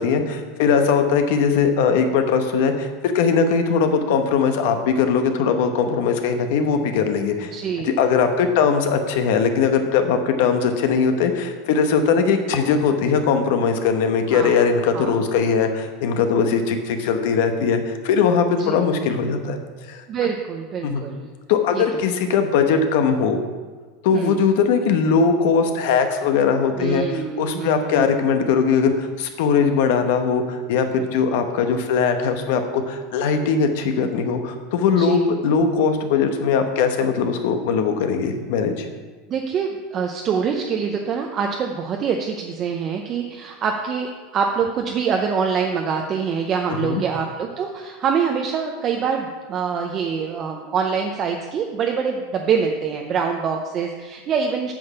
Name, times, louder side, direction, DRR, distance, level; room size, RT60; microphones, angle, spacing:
voice 1, 0.0-19.6 19.9-20.0 20.8-21.0 21.5-23.4 24.0-38.9 46.8-47.0, left 6 dB, 65° left, 7 dB, 1.0 m, -20 dB
voice 2, 7.5-8.0 14.3-14.6 14.9-15.2 18.6-18.7 20.1-21.3 21.7-21.8 24.1-24.4 26.8-28.2 35.0-35.2 39.3-54.7, right 6 dB, 30° right, 2 dB, 0.6 m, -25 dB
8.7 x 6.3 x 5.5 m, 1.4 s
supercardioid pair, 155°, 0 cm